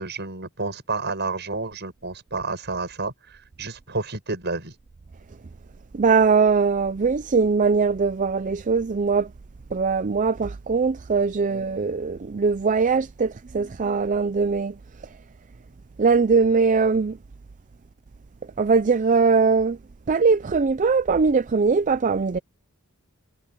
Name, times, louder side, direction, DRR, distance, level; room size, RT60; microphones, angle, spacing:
voice 1, 0.0-4.7, right 3 dB, 55° right, 7.2 m, -30 dB
voice 2, 5.9-9.3 9.7-14.8 16.0-17.2 18.6-19.8 20.1-22.4, right 4 dB, 35° right, 0.5 m, -21 dB
head